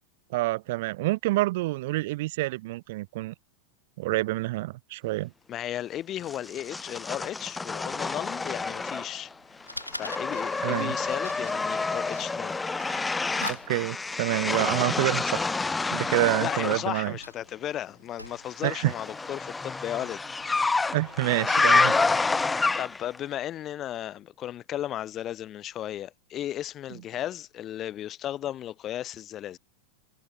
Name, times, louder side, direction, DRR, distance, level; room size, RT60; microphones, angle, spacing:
voice 1, 0.3-3.3 4.0-5.3 10.6-10.9 13.4-15.5 15.9-17.2 18.6-18.9 20.9-21.9, right 19 dB, 50° right, 1.3 m, -27 dB
voice 2, 5.5-9.3 9.9-12.6 16.4-20.2 20.5-21.0 22.8-29.6, left 12 dB, 30° left, 1.8 m, -35 dB
sound 1, 6.3-9.3 9.6-16.9 18.4-23.2, left 3 dB, 10° left, 1.6 m, -28 dB
Fire, 8.9-22.3, left 1 dB, 90° left, 6.9 m, -46 dB
figure-of-eight pair, 90°, 0 cm